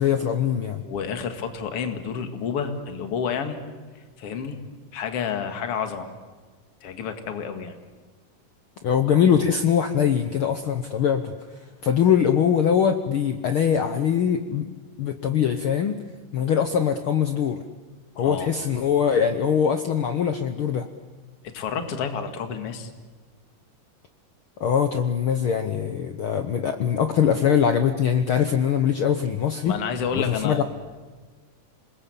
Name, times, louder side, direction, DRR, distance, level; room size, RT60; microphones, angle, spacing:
voice 1, 0.0-0.8 8.8-11.3 11.8-14.7 15.0-16.0 16.3-17.6 18.2-20.9 24.6-29.8 30.1-30.6, left 8 dB, 85° left, 7 dB, 1.1 m, -22 dB
voice 2, 0.8-3.6 4.2-4.6 4.9-6.1 6.8-7.8 18.2-18.5 21.4-22.9 29.7-30.6, left 6 dB, 50° left, 7 dB, 2.6 m, -29 dB
27.5 x 21.0 x 8.6 m, 1.4 s
omnidirectional pair, 3.8 m